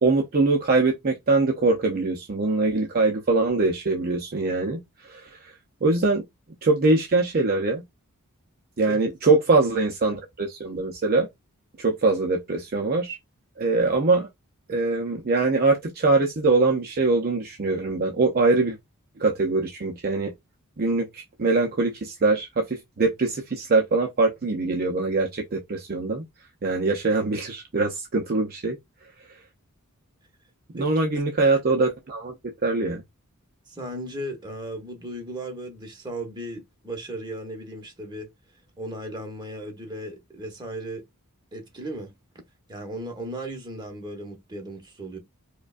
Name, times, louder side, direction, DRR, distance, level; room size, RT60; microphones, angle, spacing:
voice 1, 0.0-5.3 5.8-6.2 6.6-7.8 8.8-11.3 11.8-13.2 13.6-14.3 14.7-18.8 19.2-20.3 20.8-26.2 26.6-28.8 30.7-32.3 32.6-33.0, right 3 dB, 45° right, 0.6 m, -23 dB
voice 2, 33.7-38.3 38.8-41.0 41.5-42.1 42.7-45.2, right 1 dB, 20° right, 1.1 m, -36 dB
4.9 x 2.3 x 2.4 m
head